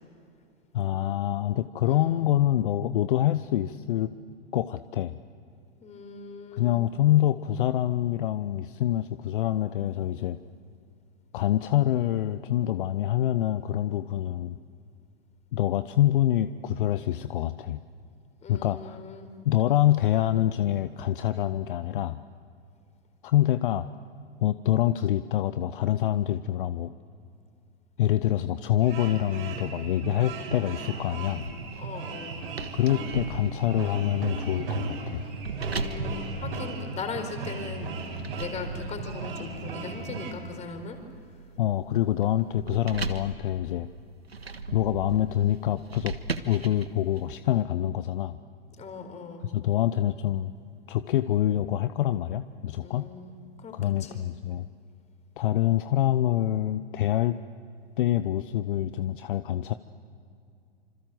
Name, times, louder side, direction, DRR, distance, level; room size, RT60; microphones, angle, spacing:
voice 1, 0.7-4.1 4.5-5.2 6.5-10.4 11.3-14.6 15.5-17.8 18.5-19.0 19.4-22.2 23.2-23.9 24.4-26.9 28.0-31.5 32.7-35.2 41.6-43.9 44.7-46.2 46.5-48.4 49.4-50.5 50.9-53.1 53.7-54.7 55.4-57.4 58.0-59.7, left 12 dB, 55° left, 12 dB, 0.8 m, -26 dB
voice 2, 1.9-2.2 5.8-6.8 18.4-19.3 31.8-32.4 35.6-37.9 38.3-41.0 42.0-42.5 48.8-49.5 52.8-54.3, left 4 dB, 20° left, 6 dB, 4.2 m, -39 dB
sound 1, 28.8-40.3, right 3 dB, 65° right, 5.9 m, -36 dB
sound 2, 31.4-37.2 37.8-47.3, right 4 dB, 90° right, 1.6 m, -39 dB
27.0 x 26.0 x 7.8 m, 2.5 s
figure-of-eight pair, 105°, 30 cm